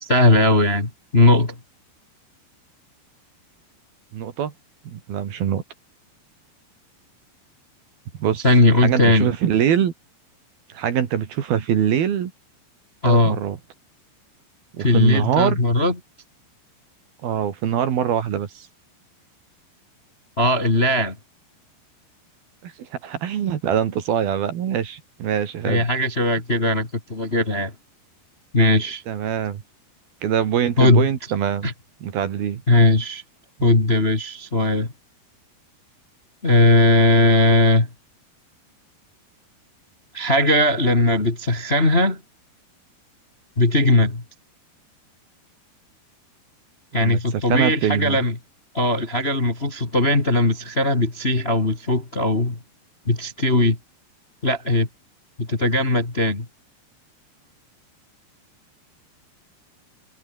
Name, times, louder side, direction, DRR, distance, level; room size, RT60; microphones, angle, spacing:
voice 1, 0.0-1.6 8.4-9.3 13.0-13.4 14.8-15.9 20.4-21.2 25.6-27.7 28.5-29.0 30.8-31.1 31.6-31.7 32.7-33.2 33.6-34.9 36.4-37.9 40.1-42.2 43.6-44.2 46.9-48.3 48.7-52.6 53.1-53.8 54.4-54.9 55.4-56.5, left 1 dB, 20° left, 2.0 m, -18 dB
voice 2, 4.1-4.5 4.9-5.6 8.2-8.5 8.8-9.9 10.7-12.3 13.0-13.6 14.7-15.6 17.2-18.7 22.6-25.9 29.1-29.6 30.2-31.7 32.0-32.6 33.6-33.7 47.0-48.2, right 9 dB, 60° right, 3.8 m, -23 dB
omnidirectional pair, 5.1 m